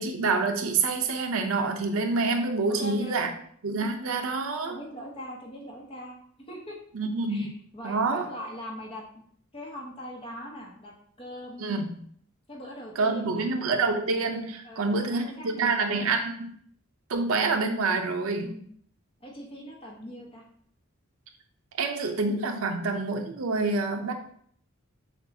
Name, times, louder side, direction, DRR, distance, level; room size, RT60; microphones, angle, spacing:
voice 1, 0.0-3.3 3.6-4.8 6.9-7.6 7.8-8.3 11.6-11.9 13.0-16.5 17.1-18.5 21.8-24.1, right 3 dB, 85° right, 4 dB, 0.6 m, -27 dB
voice 2, 2.7-3.4 4.6-6.2 6.5-6.8 7.3-9.2 9.5-10.9 11.2-11.8 12.5-13.5 14.6-16.1 18.4-18.7 19.2-20.4, equal, 25° left, -1 dB, 0.9 m, -41 dB
6.8 x 2.3 x 2.7 m, 0.63 s
head